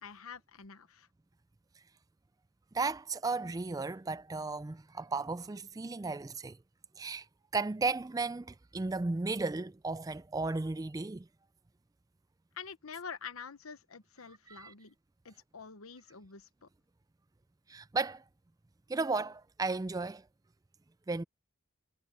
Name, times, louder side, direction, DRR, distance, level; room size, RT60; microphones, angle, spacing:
voice 1, 0.0-1.1 12.6-14.9 15.2-16.7, left 6 dB, 80° left, 1.0 m, -47 dB
voice 2, 2.7-6.6 7.0-7.3 7.5-11.3 14.5-14.7 17.7-18.2 18.9-20.2 21.1-21.2, right 3 dB, 15° right, 0.3 m, -34 dB
head